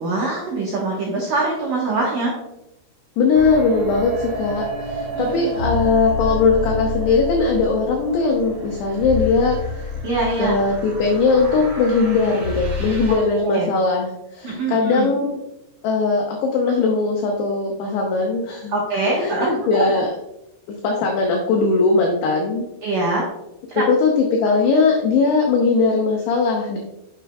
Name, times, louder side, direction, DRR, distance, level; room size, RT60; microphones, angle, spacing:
voice 1, 0.0-2.4 5.1-5.6 10.0-10.6 13.3-13.7 14.4-15.1 18.7-19.8 22.8-23.3 23.7-23.8, right 2 dB, 80° right, -3 dB, 1.9 m, -23 dB
voice 2, 3.2-9.6 10.4-15.4 15.8-18.8 19.2-20.1 20.7-22.6 23.8-26.8, left 4 dB, 85° left, 1 dB, 2.3 m, -19 dB
sound 1, 3.3-13.2, left 2 dB, 55° right, 1.6 m, -29 dB
9.3 x 7.4 x 2.3 m, 0.88 s
omnidirectional pair, 5.9 m